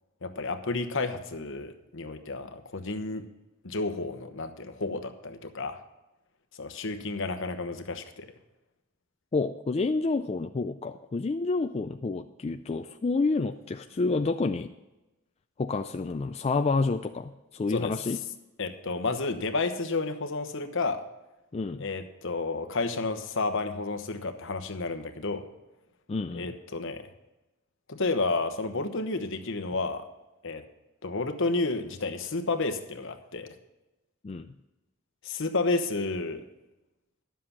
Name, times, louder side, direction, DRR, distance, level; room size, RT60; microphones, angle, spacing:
voice 1, 0.2-3.3 3.6-5.8 6.6-8.3 17.7-17.9 18.6-21.0 21.8-25.4 26.3-27.1 27.9-30.1 30.4-30.6 31.0-33.5 35.2-36.4, left 3 dB, 60° left, 8 dB, 1.1 m, -31 dB
voice 2, 9.3-14.7 15.6-18.2 21.5-21.8 26.1-26.5 34.2-34.5, left 3 dB, 30° left, 7 dB, 0.3 m, -29 dB
11.5 x 7.6 x 5.9 m, 1.0 s
head